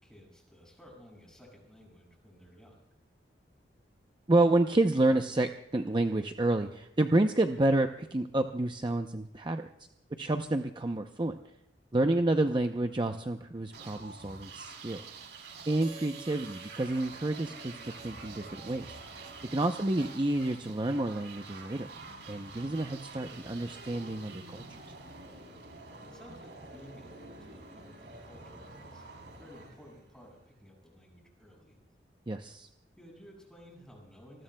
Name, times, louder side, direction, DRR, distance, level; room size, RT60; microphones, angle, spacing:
voice 1, 0.0-2.8 12.0-12.3 26.0-31.8 33.0-34.4, equal, 5° left, -1 dB, 6.2 m, -55 dB
voice 2, 4.3-9.7 10.2-11.4 11.9-15.0 15.7-18.9 19.5-21.9 22.3-24.6 32.3-32.7, right 2 dB, 25° right, 6 dB, 0.6 m, -29 dB
sound 1, 13.7-30.5, right 3 dB, 75° right, 3.5 m, -48 dB
Harmonica, 15.8-21.0, right 6 dB, 45° right, 3.3 m, -54 dB
27.0 x 20.5 x 2.2 m, 0.83 s
head